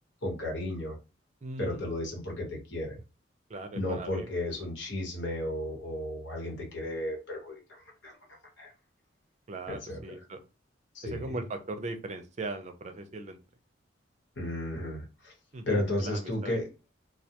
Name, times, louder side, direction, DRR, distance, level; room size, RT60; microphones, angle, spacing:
voice 1, 0.2-1.0 1.6-3.0 3.7-8.2 8.6-8.7 9.7-10.0 10.9-11.4 14.4-15.3 15.7-16.7, left 1 dB, 65° left, -1 dB, 1.1 m, -34 dB
voice 2, 1.4-1.8 3.5-4.3 9.5-10.4 11.0-13.4 15.5-16.6, right 2 dB, 35° right, 7 dB, 0.4 m, -39 dB
2.3 x 2.1 x 2.8 m, 0.30 s
head